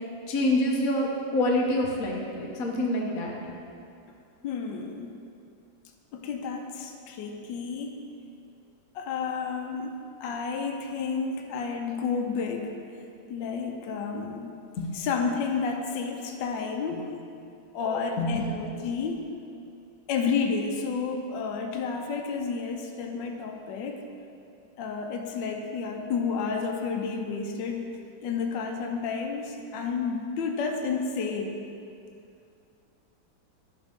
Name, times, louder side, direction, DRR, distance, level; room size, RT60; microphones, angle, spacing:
voice 1, 0.3-3.3 14.8-15.0 18.2-18.4, left 1 dB, 55° left, -1 dB, 1.2 m, -26 dB
voice 2, 4.4-5.1 6.1-8.0 8.9-10.0 10.2-12.7 13.3-14.5 14.9-17.1 17.7-19.2 20.1-24.0 24.8-27.8 28.2-31.6, left 5 dB, 70° left, 3 dB, 1.3 m, -31 dB
11.0 x 7.6 x 3.6 m, 2.5 s
omnidirectional pair, 2.2 m